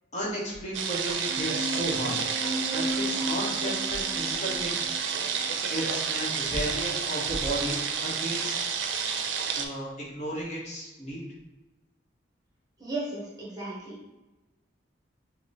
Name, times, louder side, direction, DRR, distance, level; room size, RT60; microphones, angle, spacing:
voice 1, 0.1-2.2 2.7-4.8 5.7-8.5 9.5-11.3, equal, 40° left, -5 dB, 1.0 m, -34 dB
sound 1, 0.7-9.7, right 6 dB, 75° right, 0.4 m, -30 dB
sound 2, 1.2-6.2, equal, 35° right, 1.2 m, -35 dB
voice 2, 12.8-14.1, right 2 dB, 20° right, -5 dB, 0.9 m, -35 dB
3.8 x 2.1 x 4.0 m, 1.1 s
head